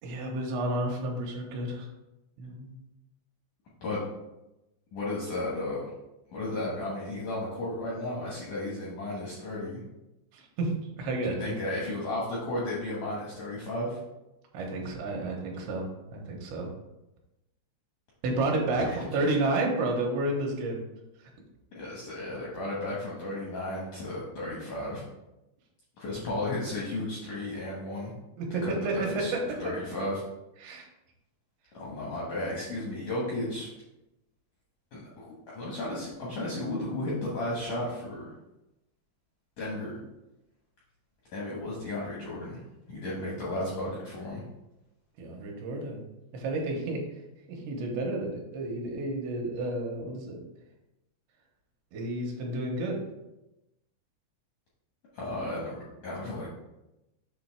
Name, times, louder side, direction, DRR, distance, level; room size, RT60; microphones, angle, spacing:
voice 1, 0.0-1.9 2.4-2.8 10.3-10.7 11.0-11.5 14.5-15.9 16.1-16.7 18.2-20.8 28.4-28.9 29.3-29.4 30.6-30.9 45.2-46.0 46.3-47.0 47.5-50.4 51.9-53.0, right 2 dB, 80° right, 0 dB, 3.2 m, -31 dB
voice 2, 4.9-5.9 6.3-9.8 11.2-14.0 18.8-19.0 21.7-25.0 26.0-28.1 28.6-30.2 31.7-33.7 34.9-38.3 39.6-40.0 41.3-42.6 42.9-44.4 55.1-56.5, left 1 dB, 75° left, -6 dB, 1.8 m, -34 dB
7.7 x 3.2 x 4.5 m, 0.95 s
omnidirectional pair, 5.3 m